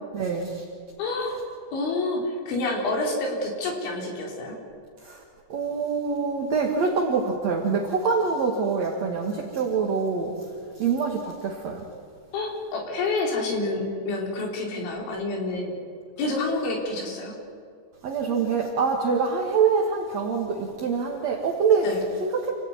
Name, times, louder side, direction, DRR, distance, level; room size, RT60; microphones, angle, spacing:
voice 1, 0.1-0.6 5.0-5.2 5.5-10.5 10.8-11.9 18.0-21.9 22.2-22.5, right 5 dB, 50° right, 0 dB, 2.2 m, -25 dB
voice 2, 1.0-4.6 12.3-15.8 16.2-17.3 21.8-22.0, left 2 dB, 70° left, 0 dB, 6.4 m, -28 dB
29.0 x 16.5 x 9.6 m, 2.2 s
omnidirectional pair, 5.7 m